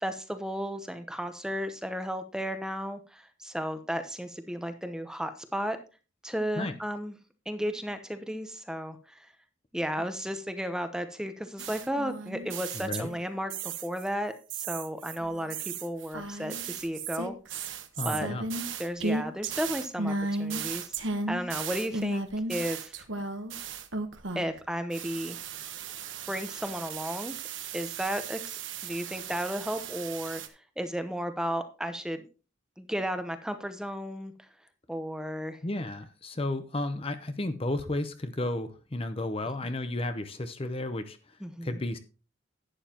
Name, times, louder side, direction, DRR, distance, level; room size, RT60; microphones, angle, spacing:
voice 1, 0.0-5.8 6.2-7.1 7.5-9.3 9.7-17.7 18.0-18.3 18.8-20.1 20.4-20.9 21.3-22.2 22.5-23.0 24.3-25.4 26.3-27.4 27.7-30.4 30.8-32.3 32.8-34.3 34.9-35.6 41.4-41.8, equal, 5° right, 0.8 m, -34 dB
sound 1, 11.6-14.1 14.5-24.6 24.9-30.5, right 4 dB, 75° right, 1.1 m, -35 dB
voice 2, 12.7-13.1 18.0-18.4 35.6-41.4 41.6-42.0, left 1 dB, 30° left, 0.7 m, -33 dB
11.5 x 9.6 x 2.9 m
head